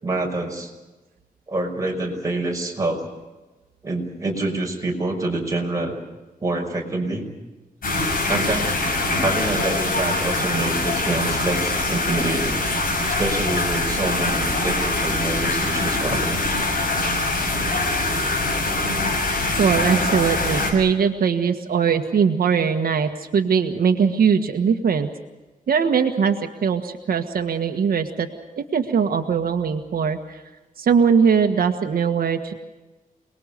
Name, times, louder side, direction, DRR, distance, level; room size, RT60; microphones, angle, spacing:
voice 1, 0.0-0.7 1.5-3.0 3.8-6.0 6.4-7.3 8.3-8.7 9.2-12.6 13.1-16.2, right 2 dB, 20° right, 0 dB, 5.6 m, -26 dB
sound 1, 7.8-20.7, left 2 dB, 75° left, 8.0 m, -23 dB
voice 2, 19.6-25.1 25.7-28.3 28.6-30.4 30.8-32.5, right 6 dB, 85° right, 5 dB, 1.6 m, -20 dB
29.0 x 20.5 x 6.7 m, 1.1 s
wide cardioid pair, 145°, 15 cm